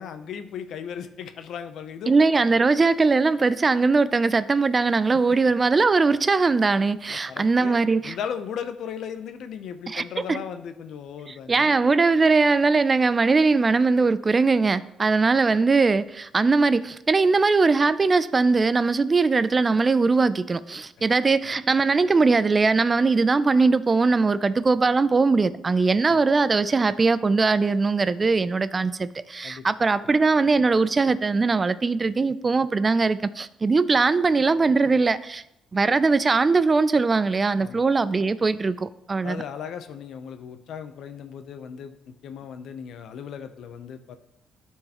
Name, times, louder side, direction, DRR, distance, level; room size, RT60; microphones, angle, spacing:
voice 1, 0.0-2.1 5.1-5.4 7.1-11.8 21.0-21.1 29.4-29.7 37.6-37.8 39.2-44.2, left 7 dB, 75° left, 0.6 m, -37 dB
voice 2, 2.1-8.2 9.9-10.4 11.3-35.4 35.7-39.4, right 4 dB, 30° right, 0.3 m, -21 dB
11.5 x 4.6 x 2.9 m
cardioid pair, 90°, 0 cm